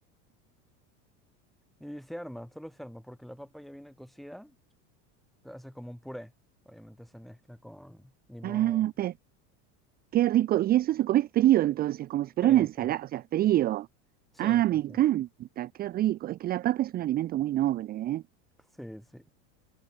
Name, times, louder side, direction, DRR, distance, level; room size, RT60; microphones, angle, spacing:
voice 1, 1.8-4.6 5.4-6.3 6.6-8.9 12.4-12.9 14.3-15.0 18.7-19.3, equal, ahead, 2.5 m, -44 dB
voice 2, 8.4-9.1 10.1-13.9 14.4-18.2, right 14 dB, 30° right, 0.5 m, -26 dB
supercardioid pair, 145°, 34 cm